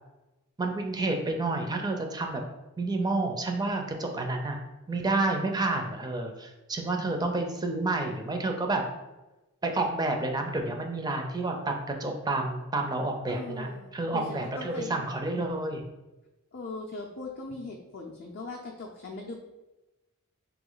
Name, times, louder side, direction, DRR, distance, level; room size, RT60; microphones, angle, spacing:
voice 1, 0.6-2.4 2.8-4.6 4.9-8.8 9.6-15.9, right 2 dB, 20° right, 3 dB, 0.4 m, -29 dB
voice 2, 13.3-15.0 16.5-19.4, left 3 dB, 45° left, 0 dB, 0.4 m, -40 dB
3.5 x 3.0 x 3.8 m, 1.0 s
head